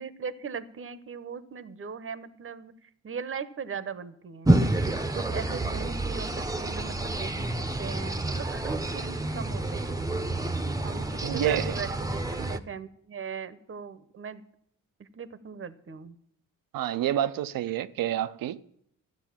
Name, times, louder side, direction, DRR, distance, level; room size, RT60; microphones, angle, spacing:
voice 1, 0.0-4.5 5.1-9.9 10.8-14.4 15.0-16.2, right 6 dB, 40° right, 0.8 m, -39 dB
sound 1, 4.4-12.6, right 2 dB, 10° right, 0.8 m, -29 dB
voice 2, 11.2-11.8 12.4-12.5 16.7-18.6, right 11 dB, 80° right, 0.6 m, -28 dB
13.0 x 7.8 x 7.4 m
cardioid pair, 65°, 34 cm